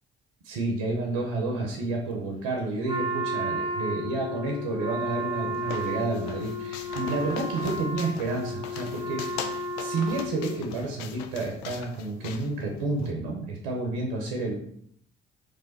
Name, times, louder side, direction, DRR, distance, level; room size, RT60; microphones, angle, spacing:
voice 1, 0.5-9.5 9.8-14.5, right 2 dB, 80° right, 1 dB, 0.8 m, -30 dB
Wind instrument woodwind instrument, 2.9-10.8, equal, 15° right, 0.7 m, -33 dB
sound 1, 4.9-13.1, left 8 dB, 80° left, 0.4 m, -41 dB
3.3 x 3.2 x 4.1 m, 0.67 s
hypercardioid pair, 45°, 30 cm